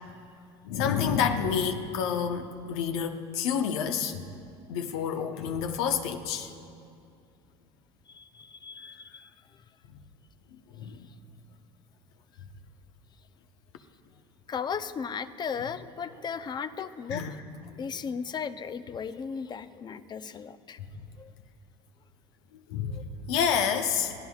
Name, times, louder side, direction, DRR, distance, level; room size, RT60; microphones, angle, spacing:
voice 1, 0.6-4.2 4.7-6.5 10.8-11.1 17.1-17.4 22.7-24.1, left 7 dB, 75° left, 6 dB, 1.0 m, -28 dB
voice 2, 8.1-9.3 14.5-17.4 17.8-20.8 21.2-21.3 22.9-23.0, left 6 dB, 30° left, 13 dB, 0.6 m, -36 dB
24.0 x 17.0 x 2.4 m, 2.4 s
supercardioid pair, 90°, 15 cm